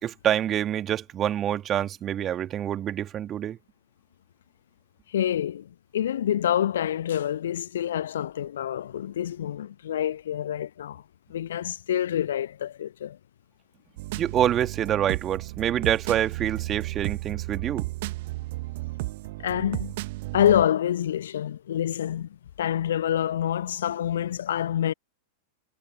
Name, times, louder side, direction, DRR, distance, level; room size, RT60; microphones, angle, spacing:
voice 1, 0.0-3.6 14.2-17.9, right 10 dB, 30° right, 2.5 m, -26 dB
voice 2, 5.1-11.0 11.3-13.2 19.4-20.0 20.3-22.3 22.6-24.9, left 10 dB, 60° left, 1.0 m, -27 dB
sound 1, 14.0-20.7, right 20 dB, 50° right, 1.3 m, -33 dB
figure-of-eight pair, 90°, 0 cm